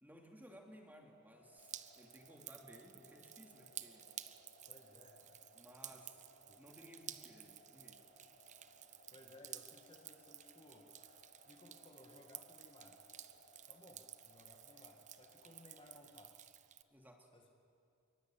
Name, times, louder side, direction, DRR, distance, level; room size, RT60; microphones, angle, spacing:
voice 1, 0.0-4.1 5.5-6.2 6.6-8.0 16.9-17.3, equal, 10° right, 2 dB, 2.7 m, -59 dB
sound 1, 1.3-16.1, left 1 dB, 65° left, 5.4 m, -66 dB
Drip, 1.6-16.8, right 11 dB, 35° right, 0.8 m, -54 dB
voice 2, 4.7-5.4 5.9-6.0 6.5-6.6 9.1-11.1 11.4-13.0 13.7-16.4 17.3-17.5, left 1 dB, 25° left, 2 dB, 1.9 m, -61 dB
24.0 x 24.0 x 9.1 m, 2.4 s
head